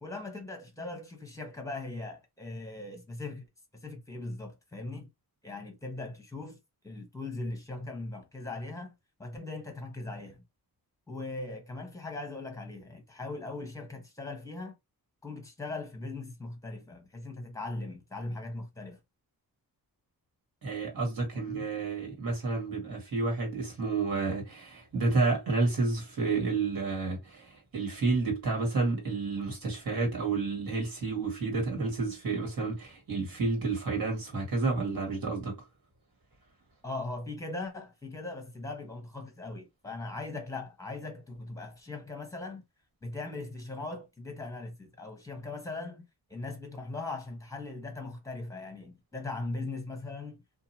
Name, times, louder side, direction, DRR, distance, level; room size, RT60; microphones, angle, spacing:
voice 1, 0.0-3.5 3.7-5.1 5.4-6.6 6.8-8.9 9.2-10.4 11.1-14.7 15.2-19.0 21.3-21.7 36.8-42.6 43.0-46.0 46.3-50.4, left 2 dB, 10° left, 0.9 m, -39 dB
voice 2, 20.6-35.6, right 3 dB, 65° right, 1.7 m, -30 dB
2.8 x 2.4 x 2.7 m
wide cardioid pair, 130°, 38 cm